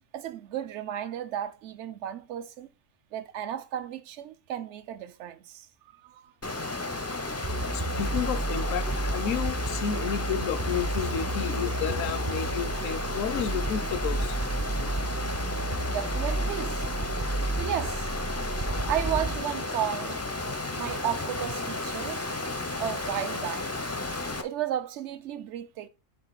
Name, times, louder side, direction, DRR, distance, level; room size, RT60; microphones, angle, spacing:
voice 1, 0.1-2.7 3.1-6.3 6.8-6.9 15.9-16.9 17.6-18.1 18.9-20.2 20.7-22.3 22.8-23.7 24.4-25.9, right 10 dB, 65° right, 0.9 m, -34 dB
Water, 6.4-24.4, left 2 dB, 20° left, 0.4 m, -33 dB
sound 1, 7.4-19.4, right 2 dB, 30° right, 0.5 m, -32 dB
voice 2, 7.7-14.4, left 9 dB, 80° left, 1.0 m, -32 dB
8.1 x 3.7 x 4.0 m
omnidirectional pair, 1.3 m